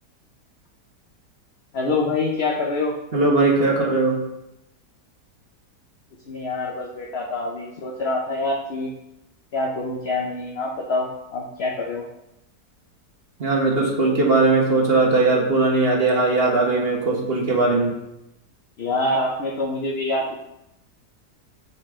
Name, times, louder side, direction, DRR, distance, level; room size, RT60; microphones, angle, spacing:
voice 1, 1.7-2.9 6.3-8.9 9.5-12.0 18.8-20.4, left 2 dB, 50° left, -1 dB, 0.9 m, -25 dB
voice 2, 3.1-4.2 13.4-17.9, right 3 dB, 40° right, -1 dB, 1.5 m, -19 dB
6.8 x 6.6 x 3.7 m, 0.87 s
omnidirectional pair, 1.8 m